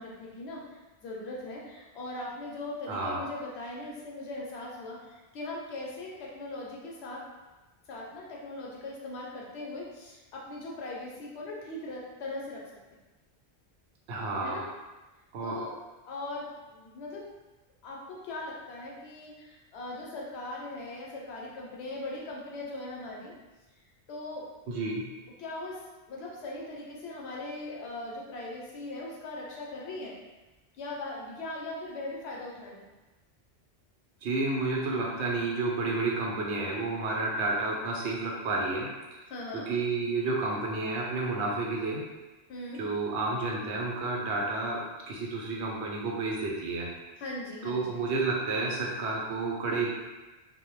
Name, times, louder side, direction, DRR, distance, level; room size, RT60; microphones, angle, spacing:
voice 1, 0.0-7.3 7.9-13.0 14.4-14.7 15.4-15.8 16.1-17.3 17.8-23.3 24.1-24.5 25.4-25.8 26.1-30.1 30.8-32.9 39.3-39.7 42.5-42.8 47.2-48.0, left 2 dB, 75° left, -3 dB, 0.8 m, -40 dB
voice 2, 2.9-3.2 14.1-14.6 15.3-15.6 24.7-25.1 34.2-39.2 39.5-42.0 42.8-46.9 47.6-49.9, right 3 dB, 90° right, -2 dB, 0.9 m, -30 dB
2.2 x 2.0 x 3.0 m, 1.1 s
omnidirectional pair, 1.1 m